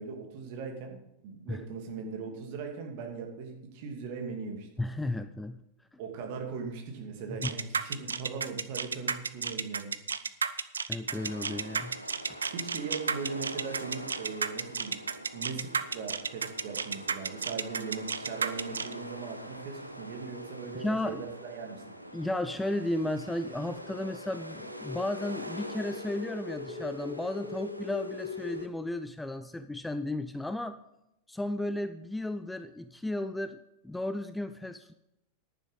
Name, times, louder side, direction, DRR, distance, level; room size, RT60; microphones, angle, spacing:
voice 1, 0.0-4.7 6.0-10.0 12.5-15.0 15.3-21.9, right 5 dB, 50° right, 2 dB, 2.6 m, -39 dB
voice 2, 4.8-5.6 7.3-7.5 10.9-12.0 20.7-21.2 22.1-30.8 31.3-33.6 33.8-34.9, left 1 dB, 5° left, 11 dB, 0.5 m, -34 dB
sound 1, 7.4-18.9, right 5 dB, 70° right, 0.5 m, -32 dB
sound 2, 11.1-28.7, equal, 90° right, 0.9 m, -45 dB
sound 3, 23.6-28.6, left 5 dB, 60° left, 2.1 m, -41 dB
10.5 x 10.0 x 5.2 m, 0.87 s
figure-of-eight pair, 90°, 0 cm